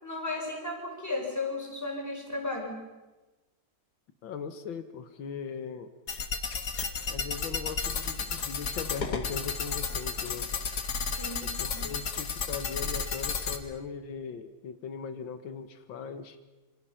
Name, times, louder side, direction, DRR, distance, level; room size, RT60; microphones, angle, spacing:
voice 1, 0.0-2.8 11.0-11.8, left 2 dB, 10° left, 0 dB, 5.1 m, -35 dB
voice 2, 4.2-5.9 7.1-10.5 11.4-16.4, left 6 dB, 85° left, 9 dB, 2.0 m, -39 dB
sound 1, 6.1-13.6, left 5 dB, 55° left, 2.1 m, -33 dB
26.5 x 26.5 x 5.7 m, 1.1 s
omnidirectional pair, 2.0 m